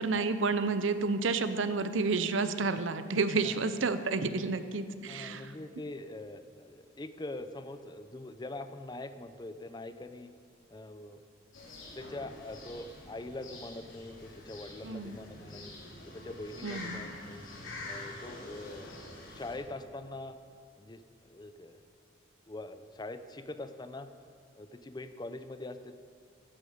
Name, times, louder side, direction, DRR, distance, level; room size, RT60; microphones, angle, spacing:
voice 1, 0.0-5.5 14.8-15.2 16.6-17.0, right 4 dB, 75° right, 11 dB, 0.7 m, -30 dB
voice 2, 5.1-10.3 10.7-11.2 11.9-15.8 16.0-17.5 17.8-18.9 19.3-20.4 20.8-21.0 21.3-21.8 22.5-24.1 24.6-26.0, left 2 dB, 20° left, 10 dB, 0.5 m, -43 dB
sound 1, 11.5-19.6, left 2 dB, 80° left, 3.2 m, -46 dB
15.0 x 11.0 x 5.1 m, 2.1 s
head